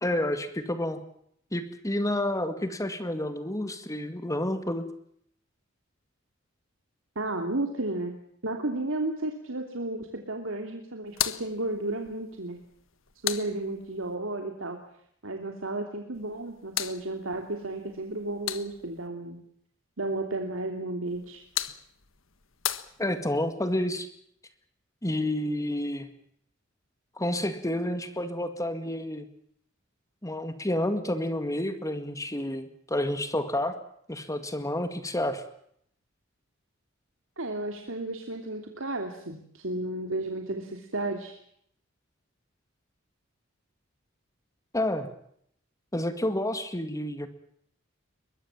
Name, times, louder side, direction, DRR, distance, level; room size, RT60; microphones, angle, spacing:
voice 1, 0.0-1.0 1.5-4.8 23.0-24.1 25.0-26.1 27.2-29.3 30.2-33.8 34.1-35.4 44.7-45.1 45.9-47.3, left 1 dB, 15° left, 9 dB, 2.0 m, -29 dB
voice 2, 7.1-8.1 8.4-12.6 13.2-14.8 15.2-19.4 20.0-21.4 37.4-41.4, right 2 dB, 75° right, 4 dB, 3.0 m, -33 dB
sound 1, 11.1-14.1 16.1-19.1 21.1-23.5, left 11 dB, 75° left, 1.5 m, -37 dB
23.0 x 21.5 x 7.4 m, 0.68 s
head